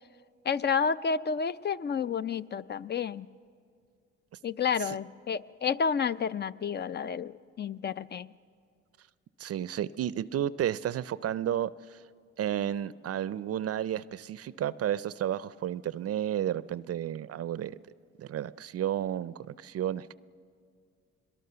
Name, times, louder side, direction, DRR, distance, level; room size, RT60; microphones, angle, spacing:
voice 1, 0.4-3.3 4.4-8.3, left 6 dB, 35° left, 15 dB, 0.5 m, -30 dB
voice 2, 9.4-12.0 12.4-17.8 18.2-20.1, right 10 dB, 55° right, 18 dB, 0.5 m, -32 dB
22.5 x 22.0 x 6.8 m, 2.2 s
cardioid pair, 90°, 30 cm